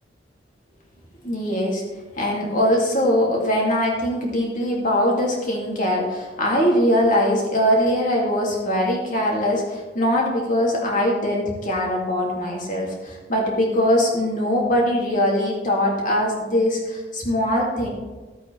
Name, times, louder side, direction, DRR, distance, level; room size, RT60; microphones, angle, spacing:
voice 1, 1.2-1.8 2.2-17.9, equal, 50° left, -2 dB, 2.6 m, -21 dB
13.5 x 8.3 x 3.4 m, 1.2 s
head